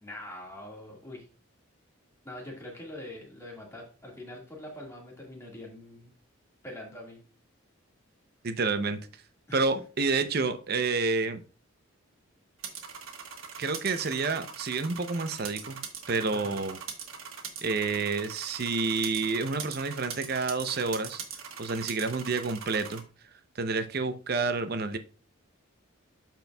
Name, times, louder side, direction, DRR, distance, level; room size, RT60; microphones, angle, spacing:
voice 1, 0.0-1.3 2.2-6.1 6.6-7.2 9.5-9.7 16.3-16.6, left 1 dB, 15° left, 1.8 m, -44 dB
voice 2, 8.4-9.0 9.5-11.4 13.6-15.8 16.1-16.8 17.6-21.2 21.6-23.0 23.6-25.0, right 4 dB, 45° right, 0.6 m, -29 dB
sound 1, 12.6-23.0, right 7 dB, 75° right, 1.4 m, -42 dB
13.0 x 4.5 x 2.3 m
head